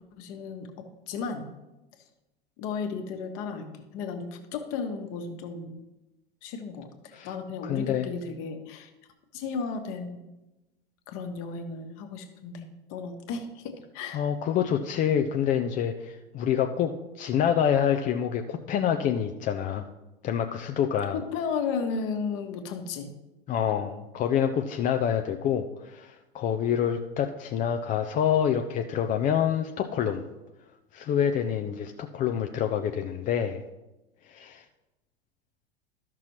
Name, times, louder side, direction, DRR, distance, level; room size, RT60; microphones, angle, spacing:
voice 1, 0.2-1.5 2.6-5.8 6.4-6.9 7.2-8.9 9.3-10.3 11.1-14.3 21.1-23.1, left 5 dB, 45° left, 5 dB, 1.3 m, -34 dB
voice 2, 7.6-8.1 14.1-19.9 20.2-21.2 23.5-30.2 30.9-33.6 34.2-34.6, left 9 dB, 25° left, 6 dB, 0.5 m, -27 dB
13.0 x 6.0 x 3.1 m, 1.0 s
figure-of-eight pair, 85°, 30 cm